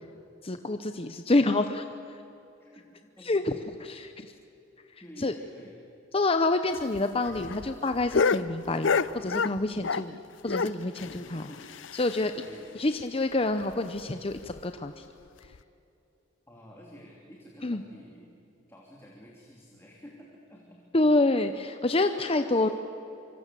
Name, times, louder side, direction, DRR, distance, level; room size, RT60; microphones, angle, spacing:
voice 1, 0.4-1.8 3.2-3.5 3.8-4.1 5.2-5.3 6.1-10.1 10.4-11.5 11.9-12.3 12.7-15.0 17.6-17.8 20.9-22.7, left 2 dB, 30° left, 8 dB, 0.8 m, -27 dB
voice 2, 2.6-3.9 5.0-5.8 11.5-11.6 12.4-12.7 16.5-18.3 18.7-20.8 21.1-21.2 22.3-22.7, equal, 15° left, -2 dB, 3.0 m, -50 dB
sound 1, 6.7-10.2 10.5-12.4 12.7-12.8 13.1-13.2 13.6-13.7 14.3-14.6 15.4-15.6, left 5 dB, 70° left, 0.6 m, -29 dB
25.5 x 25.0 x 7.7 m, 2.8 s
head